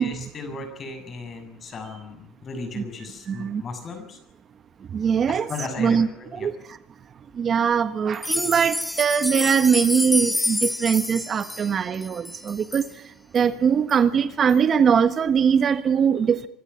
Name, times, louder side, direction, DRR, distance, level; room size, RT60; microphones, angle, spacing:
voice 1, 0.0-4.2 5.5-6.5, left 4 dB, 35° left, 7 dB, 7.2 m, -36 dB
voice 2, 3.3-3.6 4.9-5.5 5.8-6.1 6.3-6.5 7.4-12.8 13.3-16.5, right 7 dB, 40° right, 12 dB, 1.4 m, -21 dB
sound 1, 8.1-12.9 13.4-13.5 13.9-14.0 14.5-14.6, left 2 dB, 10° left, 1.0 m, -28 dB
25.0 x 13.0 x 9.7 m, 0.86 s
supercardioid pair, 105°, 0 cm